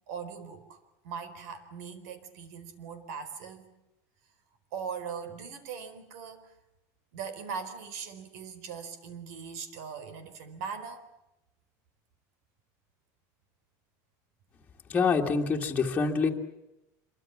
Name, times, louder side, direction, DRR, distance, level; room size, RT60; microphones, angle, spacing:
voice 1, 0.1-0.8 1.0-3.7 4.7-6.5 7.1-11.1, right 6 dB, 85° right, 12 dB, 4.3 m, -40 dB
voice 2, 14.9-16.3, left 5 dB, 15° left, 0 dB, 2.0 m, -26 dB
26.5 x 23.5 x 7.3 m, 0.91 s
cardioid pair, 170°, 8 cm